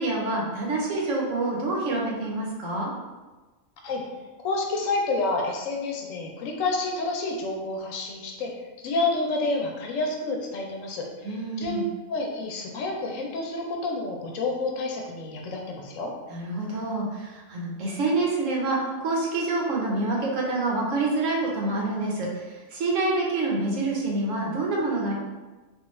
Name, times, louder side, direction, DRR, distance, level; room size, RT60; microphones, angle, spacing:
voice 1, 0.0-2.9 11.2-11.9 16.3-25.1, right 2 dB, 70° right, -2 dB, 1.1 m, -27 dB
voice 2, 4.4-8.5 8.8-11.8 12.1-16.1, left 3 dB, 75° left, 1 dB, 0.9 m, -29 dB
3.7 x 2.3 x 3.0 m, 1.2 s
omnidirectional pair, 1.4 m